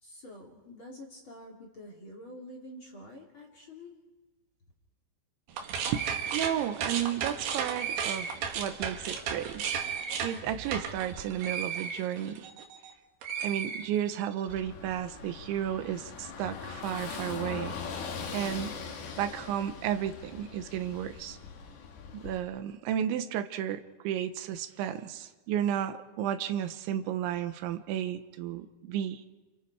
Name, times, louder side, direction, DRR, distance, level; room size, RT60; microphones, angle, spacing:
voice 1, 0.0-3.9, left 1 dB, 35° left, -1 dB, 2.9 m, -47 dB
sound 1, 5.5-12.9 13.2-14.4, right 7 dB, 65° right, 3.6 m, -34 dB
voice 2, 6.3-9.7 10.2-12.5 13.4-17.8 18.3-18.8 19.2-21.4 22.1-29.2, right 10 dB, 85° right, 10 dB, 3.4 m, -33 dB
Car passing by / Engine, 14.5-22.4, left 5 dB, 70° left, 4.5 m, -41 dB
29.0 x 29.0 x 4.8 m, 1.2 s
omnidirectional pair, 5.2 m